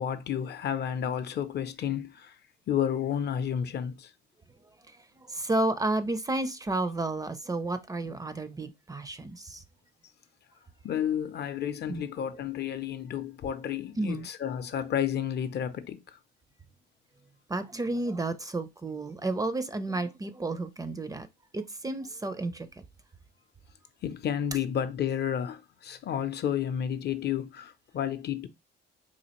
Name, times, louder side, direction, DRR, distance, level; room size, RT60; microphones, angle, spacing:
voice 1, 0.0-2.4 2.7-4.1 10.8-16.0 24.0-28.5, left 9 dB, 55° left, 0.5 m, -31 dB
voice 2, 4.9-9.6 11.9-12.0 14.0-14.3 17.5-21.3 21.5-22.7, right 2 dB, 20° right, 0.4 m, -31 dB
4.1 x 2.5 x 2.9 m
cardioid pair, 90°, 20 cm